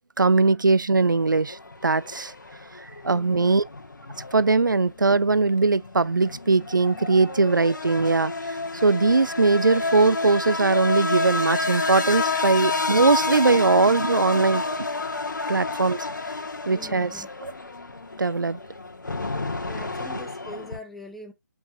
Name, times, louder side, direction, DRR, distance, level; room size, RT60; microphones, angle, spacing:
voice 1, 0.2-2.3 2.8-3.6 4.3-14.9 15.5-16.1 16.7-17.5 18.2-18.6, right 3 dB, 80° right, 0.6 m, -21 dB
sound 1, 1.0-20.8, left 3 dB, 70° left, 2.1 m, -30 dB
voice 2, 16.7-17.3 19.6-21.3, equal, ahead, 1.0 m, -43 dB
8.0 x 5.7 x 2.6 m
figure-of-eight pair, 155°, 10 cm